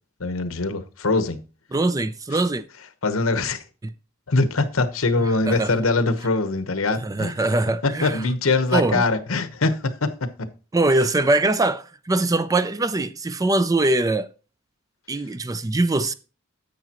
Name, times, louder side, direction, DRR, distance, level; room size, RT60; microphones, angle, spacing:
voice 1, 0.2-1.4 2.3-2.4 3.0-3.6 4.3-7.3 7.8-10.5, left 3 dB, 80° left, 1.0 m, -23 dB
voice 2, 1.7-2.6 3.8-3.9 5.5-5.7 6.9-8.2 8.7-9.0 10.7-14.3 15.1-16.1, right 2 dB, 15° right, 0.4 m, -22 dB
10.5 x 8.0 x 2.9 m
head